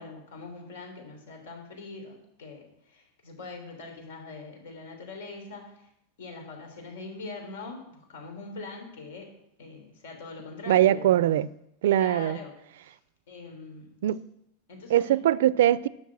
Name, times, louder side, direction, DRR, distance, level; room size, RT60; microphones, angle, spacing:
voice 1, 0.0-5.9 6.2-9.3 9.6-11.3 11.9-12.5 12.8-13.0 13.3-14.0 14.7-15.2, left 3 dB, 80° left, 3.6 m, -42 dB
voice 2, 10.7-11.5 11.8-12.4 14.0-14.2 14.9-15.9, right 12 dB, 70° right, 0.4 m, -22 dB
11.5 x 6.4 x 7.6 m
supercardioid pair, 180°, 0 cm